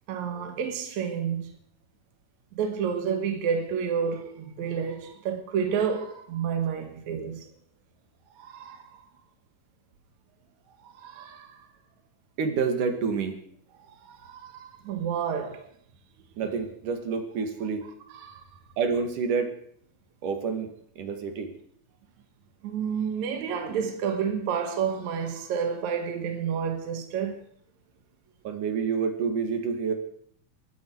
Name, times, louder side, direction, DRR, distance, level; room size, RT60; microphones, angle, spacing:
voice 1, 0.1-1.5 2.5-7.4 8.4-9.0 10.8-11.7 13.9-15.7 18.1-18.4 22.6-27.5, right 7 dB, 70° right, 2.8 m, -30 dB
voice 2, 12.4-13.4 16.4-17.9 18.8-19.5 20.2-20.7 21.0-21.5 28.5-29.9, right 5 dB, 85° right, 3.5 m, -28 dB
21.0 x 14.5 x 4.7 m
omnidirectional pair, 3.5 m